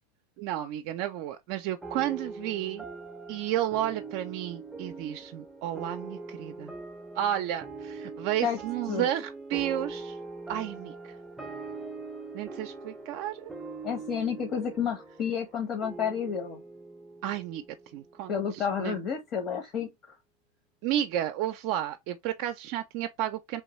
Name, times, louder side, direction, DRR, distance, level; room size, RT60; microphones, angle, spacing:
voice 1, 0.4-2.8 3.3-6.7 7.1-10.2 10.5-10.9 12.3-13.5 17.2-17.6 17.9-19.0 20.8-23.6, right 12 dB, 60° right, 0.4 m, -32 dB
sound 1, 1.8-18.6, right 3 dB, 10° right, 0.5 m, -42 dB
voice 2, 13.8-16.6 18.3-20.2, left 7 dB, 45° left, 0.9 m, -31 dB
3.3 x 2.3 x 3.0 m
hypercardioid pair, 115°, 0 cm